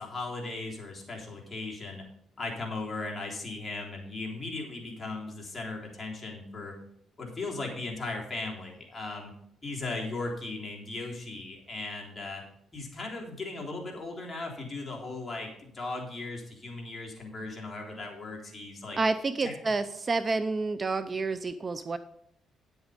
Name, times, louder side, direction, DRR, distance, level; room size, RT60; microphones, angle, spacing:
voice 1, 0.0-2.1 2.4-6.8 7.2-9.3 9.6-12.4 12.7-19.0 19.4-19.6, left 3 dB, 25° left, -2 dB, 3.6 m, -37 dB
voice 2, 19.0-22.0, right 3 dB, 35° right, 12 dB, 0.5 m, -29 dB
9.7 x 8.1 x 5.1 m, 0.73 s
cardioid pair, 90°, 0 cm